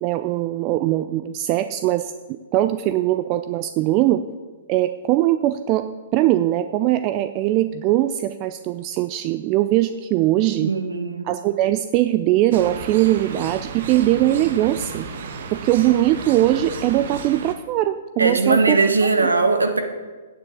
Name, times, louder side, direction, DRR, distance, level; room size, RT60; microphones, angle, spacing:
voice 1, 0.0-4.2 4.7-5.9 6.1-10.7 11.2-15.1 15.5-18.8, right 14 dB, 35° right, 11 dB, 0.4 m, -21 dB
voice 2, 10.6-11.3 18.2-19.8, right 3 dB, 90° right, 6 dB, 1.3 m, -19 dB
sound 1, 12.5-17.6, right 5 dB, 60° right, 1.2 m, -33 dB
9.4 x 6.1 x 8.0 m, 1.3 s
hypercardioid pair, 120°, 0 cm